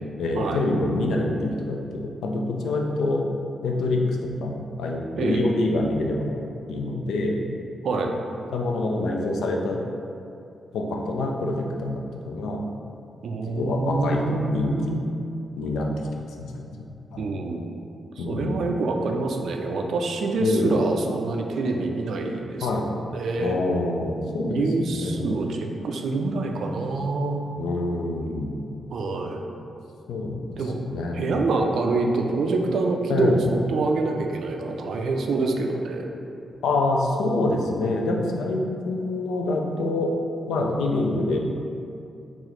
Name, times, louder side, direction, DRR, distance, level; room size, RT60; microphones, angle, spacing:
voice 1, 0.2-3.2 3.6-6.4 6.7-7.4 8.5-9.8 10.7-12.6 13.6-15.0 15.6-17.2 18.2-18.6 20.4-20.7 22.6-22.9 23.4-25.4 27.6-28.6 30.1-30.5 30.8-31.4 33.1-33.4 36.6-40.1 40.5-41.4, left 2 dB, 80° left, 1 dB, 0.3 m, -26 dB
voice 2, 13.2-15.1 17.2-17.7 18.2-22.7 23.1-23.6 24.4-27.4 28.9-29.4 30.6-30.8 31.1-36.1, right 3 dB, 70° right, 2 dB, 0.3 m, -26 dB
3.8 x 2.4 x 3.1 m, 2.6 s
hypercardioid pair, 40°, 0 cm